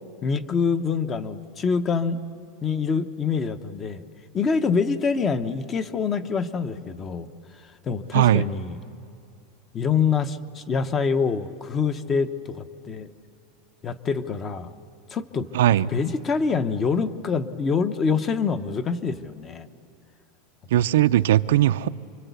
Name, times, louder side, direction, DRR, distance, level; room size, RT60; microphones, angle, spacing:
voice 1, 0.2-2.2 2.6-4.0 4.3-7.3 7.8-8.8 9.7-13.1 13.8-14.7 15.1-15.5 15.9-19.7, left 5 dB, 20° left, 0.7 m, -25 dB
voice 2, 8.1-8.4 15.5-15.9 20.7-21.9, right 13 dB, 80° right, 0.6 m, -19 dB
29.0 x 24.0 x 8.2 m
supercardioid pair, 180°, 0 cm